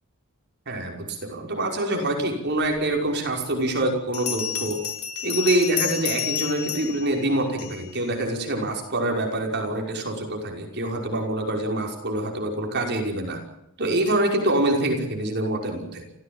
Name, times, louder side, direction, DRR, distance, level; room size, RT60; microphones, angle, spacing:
voice 1, 0.7-4.8 5.2-13.4 13.8-16.0, right 1 dB, 50° right, 2 dB, 5.7 m, -25 dB
Bell, 4.1-8.0, left 9 dB, 90° left, 6.6 m, -30 dB
29.0 x 16.0 x 8.9 m, 0.82 s
head